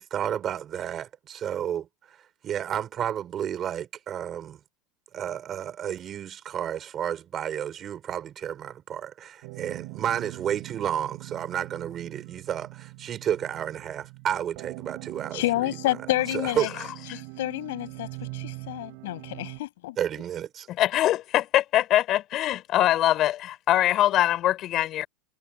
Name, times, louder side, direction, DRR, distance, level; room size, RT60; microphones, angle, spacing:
voice 1, 0.0-2.2 2.4-4.6 5.1-16.0 16.3-16.9 20.0-20.7, right 9 dB, 30° right, 4.1 m, -31 dB
sound 1, 9.4-19.6, right 32 dB, 60° right, 7.1 m, -42 dB
voice 2, 15.3-16.7 17.1-20.0, left 17 dB, 85° left, 6.7 m, -29 dB
voice 3, 20.8-25.1, left 13 dB, 35° left, 5.4 m, -23 dB
supercardioid pair, 155°, 0 cm